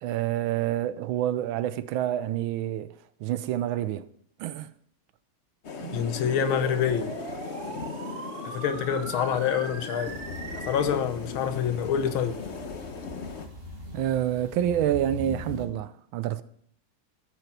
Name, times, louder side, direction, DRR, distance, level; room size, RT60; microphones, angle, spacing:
voice 1, 0.0-2.9 3.2-4.1 4.4-4.7 13.9-16.4, right 11 dB, 80° right, 1.4 m, -28 dB
sound 1, 5.6-13.5, left 4 dB, 45° left, 0.9 m, -38 dB
sound 2, 5.8-10.8, right 5 dB, 50° right, 1.6 m, -40 dB
voice 2, 5.9-7.2 8.4-10.2 10.7-12.4, left 8 dB, 80° left, 1.7 m, -26 dB
sound 3, 10.0-15.7, left 2 dB, 30° right, 2.0 m, -41 dB
13.0 x 6.1 x 5.9 m
omnidirectional pair, 2.3 m